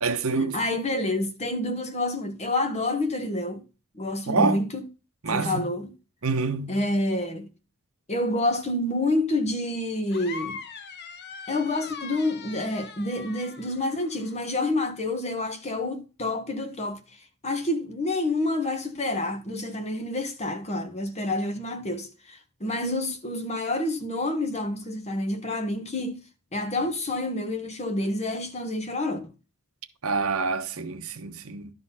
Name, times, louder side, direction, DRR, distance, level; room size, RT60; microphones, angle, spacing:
voice 1, 0.0-0.6 4.3-4.6 5.2-5.6 6.2-6.8 30.0-31.7, right 4 dB, 70° right, 1.1 m, -26 dB
voice 2, 0.5-3.6 3.9-4.8 5.3-5.9 6.7-7.5 8.1-10.6 11.5-17.0 17.4-26.2 26.5-29.3, left 2 dB, 30° left, 1.3 m, -28 dB
sound 1, 10.1-14.5, left 5 dB, 50° left, 0.9 m, -41 dB
12.0 x 4.1 x 5.6 m
head